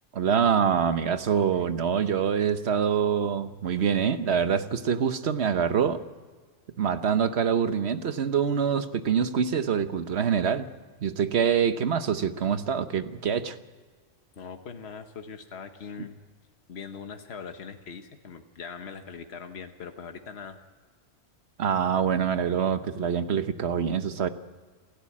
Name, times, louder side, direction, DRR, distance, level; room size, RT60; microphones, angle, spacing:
voice 1, 0.1-6.0 6.8-10.7 11.0-13.6 21.6-24.3, right 7 dB, 75° right, 10 dB, 1.3 m, -25 dB
voice 2, 14.3-16.2 16.7-20.6, left 6 dB, 70° left, 6 dB, 1.4 m, -41 dB
29.0 x 12.0 x 8.5 m, 1.5 s
omnidirectional pair, 1.1 m